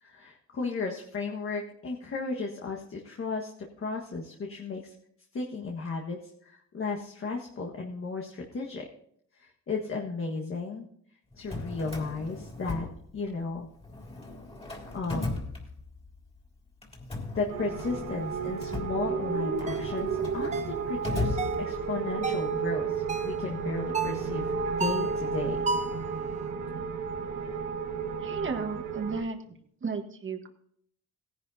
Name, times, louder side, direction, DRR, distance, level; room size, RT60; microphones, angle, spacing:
voice 1, 0.0-3.5 3.8-4.9 5.3-8.8 9.4-10.9 11.3-12.9 13.1-13.7 14.9-15.4 17.3-25.6, left 4 dB, 45° left, 0 dB, 1.6 m, -34 dB
Drawer open or close, 11.3-13.5 13.8-16.2 16.8-22.1, left 2 dB, 20° left, 3.3 m, -38 dB
sound 1, 17.5-29.2, right 5 dB, 90° right, 1.5 m, -32 dB
sound 2, 19.7-19.9 20.5-20.8 21.4-21.7 22.2-22.5 23.1-23.4 23.9-24.2 24.8-25.1 25.7-26.0, right 4 dB, 25° right, 0.6 m, -32 dB
voice 2, 28.2-30.5, right 4 dB, 40° right, 4 dB, 1.6 m, -34 dB
17.0 x 11.0 x 2.8 m, 0.68 s
cardioid pair, 90°, 30 cm